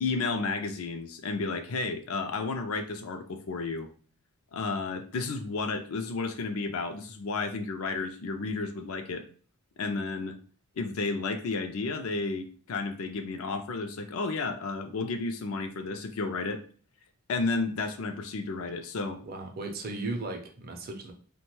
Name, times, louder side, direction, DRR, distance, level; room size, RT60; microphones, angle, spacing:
voice 1, 0.0-3.9 4.5-9.2 9.8-10.4 10.8-16.6 17.3-19.2, left 3 dB, 65° left, 7 dB, 0.4 m, -32 dB
voice 2, 19.2-21.1, right 2 dB, 40° right, 4 dB, 0.5 m, -36 dB
2.9 x 2.2 x 3.1 m, 0.43 s
head